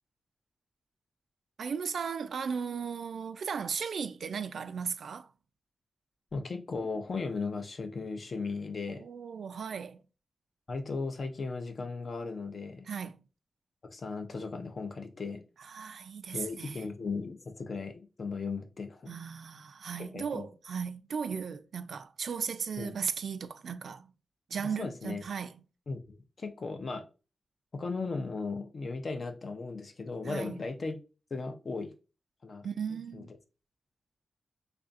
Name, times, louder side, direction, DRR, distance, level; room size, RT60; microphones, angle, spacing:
voice 1, 1.6-5.3 9.0-10.0 12.8-13.2 15.6-16.8 19.1-24.1 24.5-25.6 30.3-30.6 32.6-33.3, right 6 dB, 75° right, 0.3 m, -36 dB
voice 2, 6.3-9.1 10.7-12.9 13.8-15.4 16.3-19.1 20.0-20.5 22.8-22.9 24.6-25.2 25.9-27.1 27.7-31.0 31.3-31.9 32.4-32.7 33.1-33.3, left 4 dB, 45° left, 0.6 m, -36 dB
3.3 x 2.5 x 3.8 m
wide cardioid pair, 150°, 0 cm